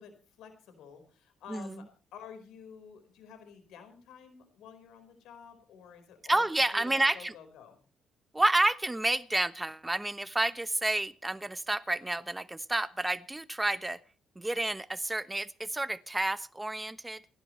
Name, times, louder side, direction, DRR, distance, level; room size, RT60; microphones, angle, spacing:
voice 1, 0.0-1.9 2.1-7.8, left 7 dB, 85° left, 8 dB, 4.7 m, -50 dB
voice 2, 6.3-7.3 8.3-14.0 14.4-17.2, right 2 dB, 15° right, 13 dB, 1.0 m, -30 dB
28.5 x 11.5 x 3.2 m, 0.36 s
cardioid pair, 90°, 0 cm